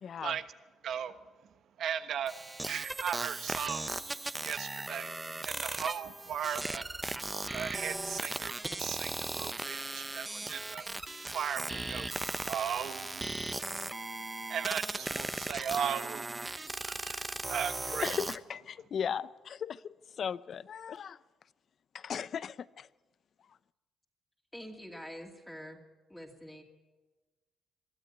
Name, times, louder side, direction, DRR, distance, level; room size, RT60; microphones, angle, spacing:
voice 1, 0.0-0.4 18.0-21.2 21.9-22.9, left 7 dB, 55° left, 19 dB, 0.6 m, -37 dB
voice 2, 0.8-1.3 1.8-2.4 2.6-3.9 4.4-6.9 7.5-10.9 11.2-13.5 14.5-18.2, right 9 dB, 70° right, 11 dB, 1.2 m, -37 dB
sound 1, 2.3-18.4, right 2 dB, 15° right, 0.9 m, -37 dB
voice 3, 24.5-25.8 26.1-26.6, equal, 5° left, 1 dB, 2.6 m, -46 dB
22.5 x 13.0 x 9.3 m, 1.2 s
cardioid pair, 90°, 0 cm